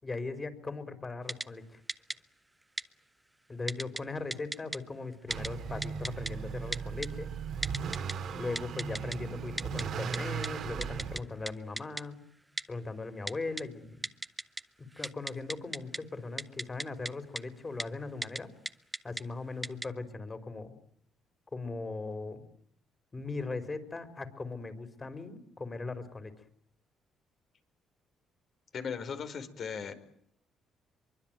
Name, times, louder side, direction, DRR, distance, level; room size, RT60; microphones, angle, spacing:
voice 1, 0.0-1.8 3.5-7.3 8.3-12.2 12.7-14.1 15.0-18.5 19.0-20.8 21.5-22.4 23.1-26.3, left 3 dB, 30° left, 11 dB, 5.1 m, -39 dB
Typing, 1.3-1.5 1.9-2.2 2.8-2.9 3.7-4.0 4.3-4.8 5.3-5.5 5.8-6.3 6.7-7.1 7.6-8.1 8.6-9.2 9.6-9.8 10.1-10.2 10.4-10.5 10.8-11.2 11.5-11.6 11.8-12.0 12.6-12.7 13.3-13.6 14.0-14.6 14.9-16.0 16.4-17.1 17.4-17.5 17.8-17.9 18.2-18.4 18.7-19.2 19.6-19.9, right 1 dB, 10° right, 1.3 m, -35 dB
Motor vehicle (road) / Accelerating revving vroom, 5.3-11.2, right 7 dB, 65° right, 2.6 m, -37 dB
voice 2, 28.7-29.9, left 6 dB, 55° left, 10 dB, 4.9 m, -37 dB
24.5 x 24.0 x 9.3 m, 0.71 s
supercardioid pair, 75°, 0 cm